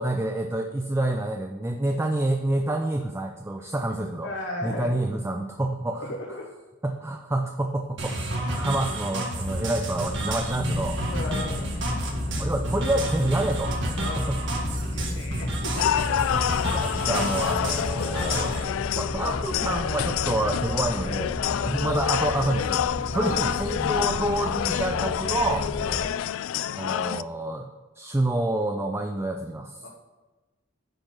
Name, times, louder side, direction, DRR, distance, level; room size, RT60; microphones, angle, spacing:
voice 1, 0.0-4.3 4.6-6.1 6.8-11.0 12.4-13.7 14.0-14.4 16.5-21.3 21.6-22.9 23.1-25.7 26.8-27.7 28.0-29.9, right 1 dB, 15° right, 4 dB, 0.4 m, -28 dB
voice 2, 4.2-5.0 6.0-6.5 11.1-11.7 14.0-14.3 14.8-15.9 21.5-21.8 23.0-23.5 25.8-26.1 28.9-29.0 29.8-29.9, left 1 dB, 65° left, -2 dB, 1.2 m, -35 dB
sound 1, 8.0-18.6, right 1 dB, 65° right, 1.7 m, -31 dB
sound 2, 9.9-26.1, left 1 dB, 35° left, 1.0 m, -33 dB
sound 3, 15.8-27.2, left 10 dB, 90° left, 0.3 m, -28 dB
9.8 x 4.5 x 6.0 m, 1.2 s
head